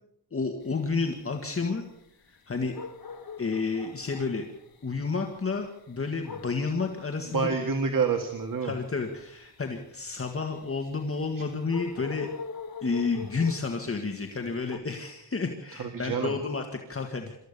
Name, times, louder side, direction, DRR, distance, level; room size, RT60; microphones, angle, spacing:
voice 1, 0.3-1.9 2.5-2.7 3.4-4.5 4.8-7.5 8.6-12.3 12.8-17.4, left 4 dB, 30° left, 3 dB, 1.9 m, -30 dB
sound 1, 0.6-14.8, left 5 dB, 55° left, 2.5 m, -44 dB
voice 2, 7.3-8.7 11.4-11.5 15.8-16.4, right 5 dB, 50° right, 4 dB, 2.0 m, -28 dB
27.0 x 14.0 x 6.9 m, 0.80 s
wide cardioid pair, 125°, 42 cm